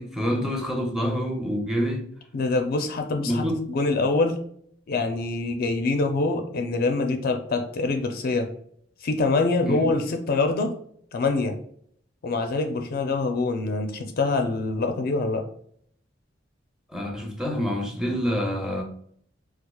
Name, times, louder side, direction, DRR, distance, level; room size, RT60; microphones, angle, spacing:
voice 1, 0.0-2.1 3.2-3.6 9.6-9.9 16.9-18.8, equal, 5° right, 0.5 m, -27 dB
voice 2, 2.3-4.4 4.9-8.5 9.0-10.7 11.1-11.5 12.2-15.4, left 3 dB, 55° left, 0.4 m, -25 dB
4.3 x 2.4 x 2.2 m
head